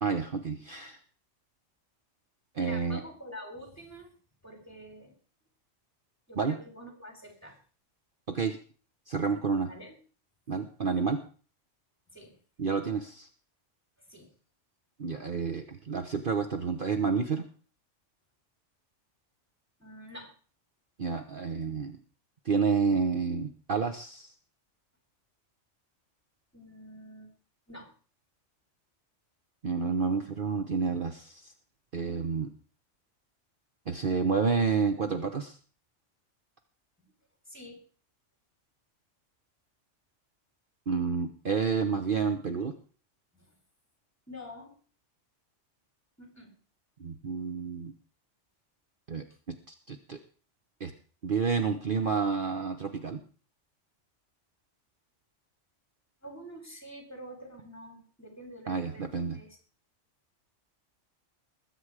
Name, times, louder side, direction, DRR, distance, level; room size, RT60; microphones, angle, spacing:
voice 1, 0.0-1.0 2.5-3.0 6.4-6.6 8.3-8.6 9.1-9.7 10.5-11.2 12.6-13.3 15.0-17.5 21.0-22.0 22.4-24.3 29.6-31.5 31.9-32.5 33.9-35.6 40.9-42.7 47.0-47.9 49.1-49.6 49.9-50.2 50.8-50.9 51.2-53.2 58.7-59.4, right 5 dB, 45° right, 7 dB, 1.1 m, -29 dB
voice 2, 2.6-4.2 4.4-5.2 6.3-7.6 9.7-10.0 12.1-12.4 14.1-14.3 19.8-20.3 26.5-27.3 27.7-27.9 37.0-37.1 37.5-37.8 43.3-43.6 44.3-44.8 46.2-46.5 56.2-59.0 59.3-59.6, equal, 10° left, 4 dB, 3.9 m, -47 dB
20.5 x 8.2 x 4.9 m, 0.39 s
omnidirectional pair, 1.3 m